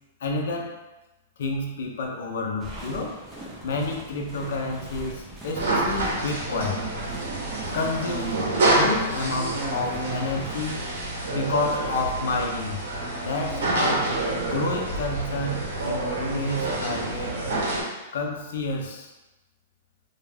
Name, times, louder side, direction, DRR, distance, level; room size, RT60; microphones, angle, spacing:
voice 1, 0.2-0.8 1.4-3.2 3.6-6.8 7.7-8.4 8.8-10.8 11.3-12.8 13.2-14.1 14.4-17.4 18.1-19.1, left 3 dB, 60° left, 1 dB, 0.5 m, -29 dB
sound 1, 2.6-10.7, equal, 5° right, 0.4 m, -42 dB
sound 2, 5.5-17.8, right 2 dB, 75° right, 0.8 m, -27 dB
2.3 x 2.2 x 3.1 m, 1.0 s
supercardioid pair, 175°, 0 cm